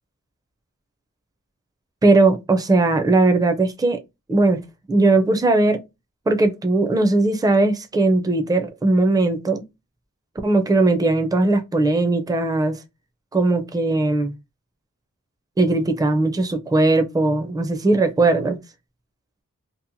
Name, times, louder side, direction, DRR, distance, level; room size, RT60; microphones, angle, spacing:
voice 1, 2.0-4.0 4.3-4.6 4.9-5.8 6.3-9.6 10.4-12.8 13.3-14.3 15.6-18.6, right 2 dB, 10° right, 0.4 m, -19 dB
2.8 x 2.0 x 2.6 m
wide cardioid pair, 55°, 31 cm